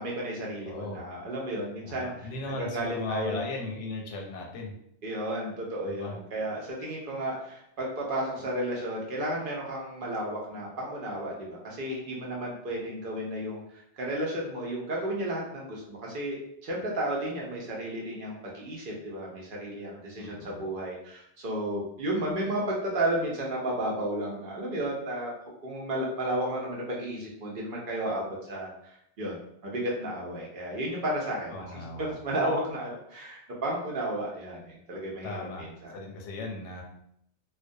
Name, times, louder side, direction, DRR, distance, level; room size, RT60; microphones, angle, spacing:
voice 1, 0.0-2.3 2.6-3.4 5.0-25.3 25.6-35.9, right 1 dB, 55° right, -3 dB, 0.7 m, -33 dB
voice 2, 0.6-1.0 1.8-4.7 5.8-6.2 20.2-20.6 31.5-32.2 35.2-36.8, left 3 dB, 90° left, 1 dB, 0.9 m, -37 dB
2.2 x 2.2 x 2.6 m, 0.72 s
omnidirectional pair, 1.2 m